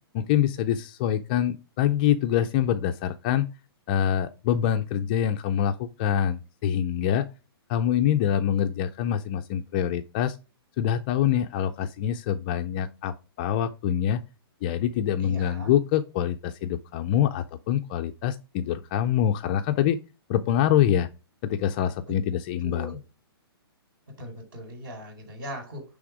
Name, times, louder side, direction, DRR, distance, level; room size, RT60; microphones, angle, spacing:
voice 1, 0.1-3.5 3.9-7.3 7.7-10.4 10.8-14.2 14.6-20.0 20.3-21.1 21.4-22.9, left 10 dB, 20° left, 0.3 m, -25 dB
voice 2, 15.2-15.7 22.6-23.0 24.2-25.8, equal, 55° right, 4.6 m, -39 dB
9.6 x 3.5 x 4.8 m
hypercardioid pair, 165°, 13 cm